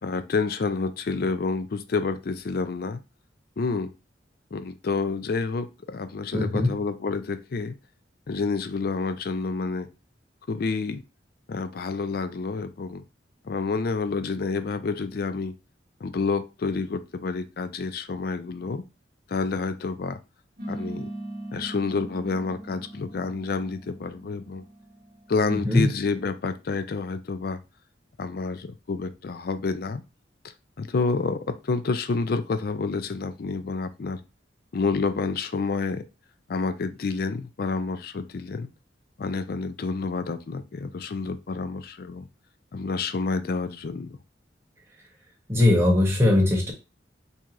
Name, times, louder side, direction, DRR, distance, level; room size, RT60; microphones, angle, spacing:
voice 1, 0.0-3.0 3.6-3.9 4.5-7.8 8.3-9.9 10.5-11.0 11.5-13.0 13.4-15.5 16.0-18.8 19.3-20.2 20.7-21.1 21.5-24.6 25.3-27.6 28.2-30.0 30.8-34.2 34.7-36.0 36.5-38.7 39.2-42.3 42.7-44.2, left 4 dB, 55° left, 12 dB, 0.4 m, -29 dB
voice 2, 6.3-6.8 25.5-25.9 45.5-46.7, left 2 dB, 15° right, -2 dB, 1.0 m, -20 dB
sound 1, 20.6-25.5, right 1 dB, 55° right, 0.9 m, -39 dB
4.6 x 2.8 x 2.5 m, 0.28 s
head